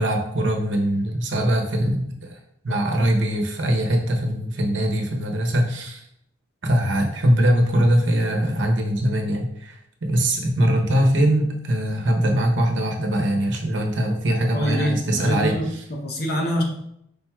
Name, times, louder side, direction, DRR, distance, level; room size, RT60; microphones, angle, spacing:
voice 1, 0.0-2.4 2.6-6.0 6.6-15.9, equal, 80° right, 2 dB, 0.8 m, -22 dB
voice 2, 14.5-15.6 16.0-16.6, equal, 55° left, 1 dB, 0.9 m, -24 dB
5.0 x 4.4 x 2.3 m, 0.74 s
head